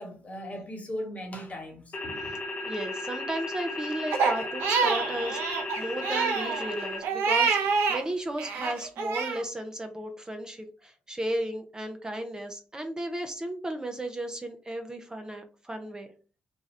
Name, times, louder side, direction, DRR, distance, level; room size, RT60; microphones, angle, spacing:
voice 1, 0.0-2.3, equal, 35° left, 1.3 m, -38 dB
sound 1, 1.9-7.0, left 2 dB, 55° left, 0.8 m, -35 dB
voice 2, 2.6-16.1, right 1 dB, 20° right, 0.5 m, -35 dB
Crying sobbing, 4.1-8.0 8.4-9.4, right 5 dB, 80° right, 0.6 m, -27 dB
2.7 x 2.3 x 3.1 m
supercardioid pair, 55°, 4 cm